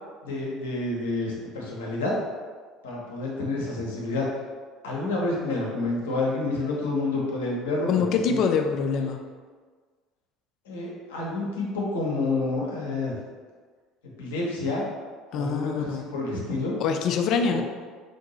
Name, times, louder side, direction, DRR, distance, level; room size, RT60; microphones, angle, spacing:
voice 1, 0.2-2.2 2.8-4.3 4.8-8.4 8.9-9.0 10.7-13.2 14.2-14.9 15.3-16.8 17.5-17.6, left 2 dB, 70° left, -3 dB, 0.9 m, -29 dB
voice 2, 7.9-9.2 15.3-16.1 16.8-17.6, left 6 dB, 50° left, 5 dB, 0.4 m, -25 dB
3.5 x 2.7 x 4.0 m, 1.5 s
figure-of-eight pair, 60°, 0 cm